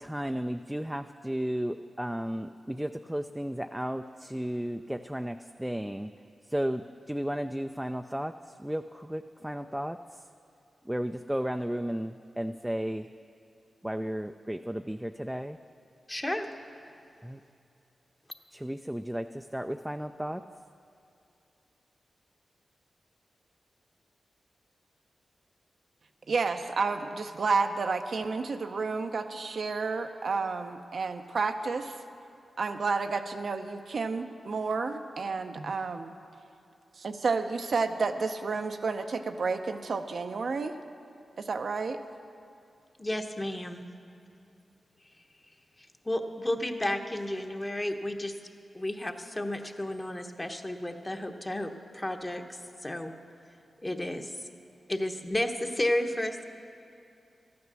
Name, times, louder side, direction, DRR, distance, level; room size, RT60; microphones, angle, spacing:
voice 1, 0.0-6.1 6.5-10.0 10.9-13.1 13.8-15.6 17.2-17.4 18.5-20.4, equal, 10° right, 7 dB, 0.4 m, -34 dB
voice 2, 16.1-16.5 43.0-43.8 45.8-48.3 48.7-53.1 53.8-54.4 54.9-56.4, left 1 dB, 25° left, 5 dB, 1.1 m, -32 dB
voice 3, 26.3-32.0 32.6-36.1 37.0-40.8 41.4-42.0, right 4 dB, 70° right, 6 dB, 0.6 m, -31 dB
13.5 x 9.6 x 6.2 m, 2.6 s
cardioid pair, 45°, 0 cm